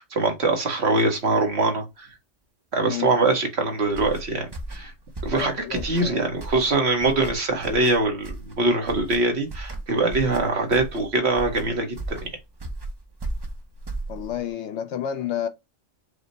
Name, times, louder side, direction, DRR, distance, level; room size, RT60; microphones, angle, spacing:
voice 1, 0.0-2.1 2.7-4.9 5.2-12.3, right 2 dB, 55° right, 1.3 m, -23 dB
voice 2, 2.8-3.1 5.3-6.4 14.1-15.5, left 10 dB, 70° left, 0.8 m, -31 dB
sound 1, 3.9-14.5, right 2 dB, 30° right, 0.4 m, -36 dB
5.0 x 2.1 x 4.0 m
omnidirectional pair, 1.4 m